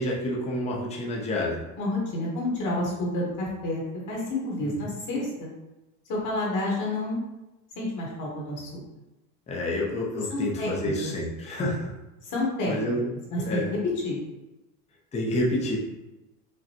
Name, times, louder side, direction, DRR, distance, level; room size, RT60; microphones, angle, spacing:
voice 1, 0.0-1.6 4.6-4.9 9.5-11.9 12.7-13.1 13.4-13.7 15.1-15.8, left 1 dB, 15° left, -3 dB, 0.6 m, -28 dB
voice 2, 1.8-5.5 6.1-7.2 7.8-8.8 10.3-11.1 12.2-12.7 13.3-14.2, left 2 dB, 45° left, -3 dB, 1.3 m, -29 dB
5.0 x 2.2 x 2.9 m, 0.99 s
supercardioid pair, 125°, 44 cm